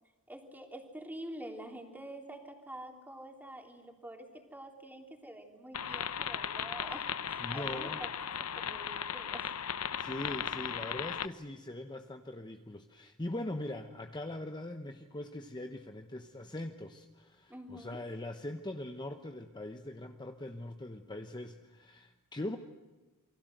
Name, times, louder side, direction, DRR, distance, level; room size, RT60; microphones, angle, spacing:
voice 1, 0.3-9.5 17.5-18.0, right 1 dB, 10° right, 3 dB, 3.5 m, -47 dB
sound 1, 5.7-11.3, left 8 dB, 75° left, 0.9 m, -37 dB
voice 2, 7.4-8.0 10.0-22.6, left 1 dB, 20° left, 6 dB, 1.0 m, -41 dB
28.5 x 24.0 x 7.9 m, 1.2 s
head